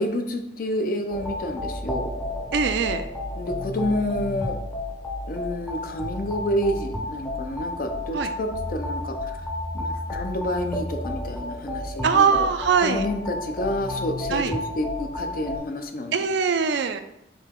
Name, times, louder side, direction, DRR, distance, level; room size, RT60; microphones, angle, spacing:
voice 1, 0.0-2.1 3.4-4.6 5.3-9.4 9.7-12.3 12.8-16.1, left 1 dB, 50° left, 5 dB, 0.5 m, -29 dB
sound 1, 1.1-15.6, left 1 dB, 10° left, 0.6 m, -32 dB
voice 2, 2.5-3.1 8.1-8.3 12.0-13.1 14.3-14.5 16.1-17.0, right 6 dB, 70° right, 10 dB, 0.3 m, -22 dB
4.8 x 2.8 x 3.6 m, 0.82 s
head